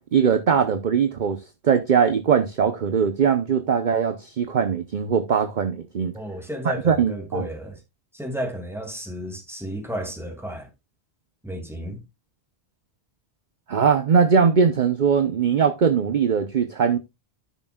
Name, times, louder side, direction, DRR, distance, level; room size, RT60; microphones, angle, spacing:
voice 1, 0.1-6.1 6.6-7.4 13.7-17.0, right 6 dB, 50° right, 0.8 m, -21 dB
voice 2, 6.1-7.8 8.1-10.7 11.4-12.0, equal, ahead, 2.3 m, -32 dB
13.0 x 6.2 x 2.3 m
omnidirectional pair, 1.1 m